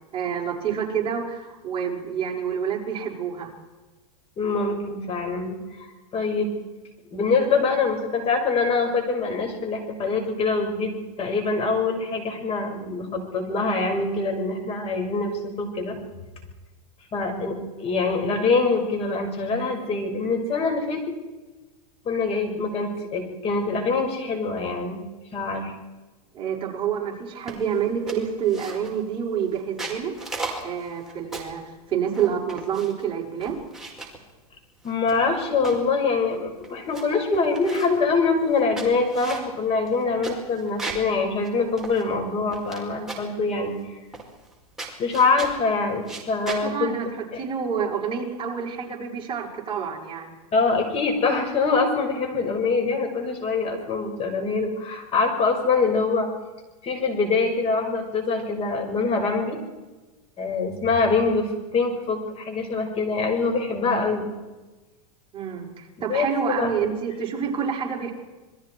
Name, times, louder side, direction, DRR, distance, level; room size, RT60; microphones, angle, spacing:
voice 1, 0.1-3.5 26.3-30.1 30.6-31.6 31.9-33.6 46.4-50.3 65.3-68.1, right 7 dB, 25° right, -2 dB, 6.0 m, -28 dB
voice 2, 4.4-6.5 7.1-16.0 17.1-21.1 22.0-25.0 25.3-25.7 34.8-43.7 45.0-47.4 50.5-56.3 56.8-59.6 60.4-64.3 66.1-66.7 67.4-67.5, left 4 dB, 30° left, 4 dB, 6.0 m, -24 dB
sound 1, 27.5-27.8 28.1-29.0 29.6-31.6 32.1-33.0 33.4-34.2 34.8-35.9 36.3-36.4 36.6-37.0 37.3-38.0 38.5-41.1 41.4-41.5 41.8-42.8 43.1-43.4 44.1-44.5 44.8-45.6 46.0-46.6, right 3 dB, ahead, 4.8 m, -36 dB
28.0 x 22.0 x 4.8 m, 1.2 s
supercardioid pair, 135°, 20 cm